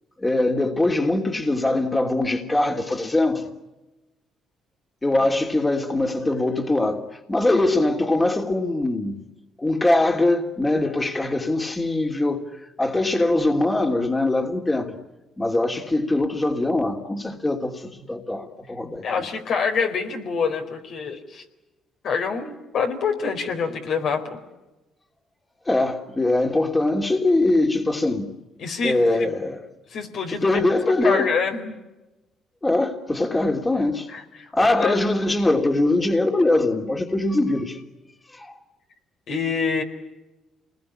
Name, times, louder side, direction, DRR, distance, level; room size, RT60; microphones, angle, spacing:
voice 1, 0.2-3.5 5.0-9.1 9.6-14.9 15.4-19.3 25.6-28.3 28.8-29.6 30.3-31.3 32.6-34.1 34.5-37.8 38.3-38.6, left 2 dB, 20° left, 3.0 m, -22 dB
voice 2, 19.0-21.4 22.0-24.4 28.6-29.3 29.9-30.6 31.0-31.8 34.1-34.2 34.6-35.0 39.3-39.8, left 5 dB, 65° left, 4.2 m, -26 dB
28.0 x 20.5 x 9.9 m
supercardioid pair, 65°, 0 cm